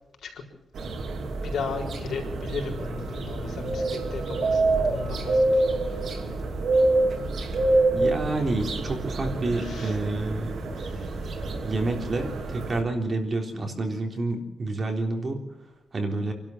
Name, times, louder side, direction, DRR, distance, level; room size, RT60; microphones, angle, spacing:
sound 1, 0.7-12.8, right 2 dB, 65° right, 3.1 m, -27 dB
voice 1, 1.3-6.3 9.6-10.0 10.8-11.2, left 5 dB, 75° left, 3 dB, 4.6 m, -36 dB
voice 2, 7.9-10.5 11.6-15.4 15.9-16.3, right 2 dB, 35° right, 3 dB, 3.7 m, -28 dB
28.0 x 12.5 x 7.4 m, 0.92 s
wide cardioid pair, 130°, 0 cm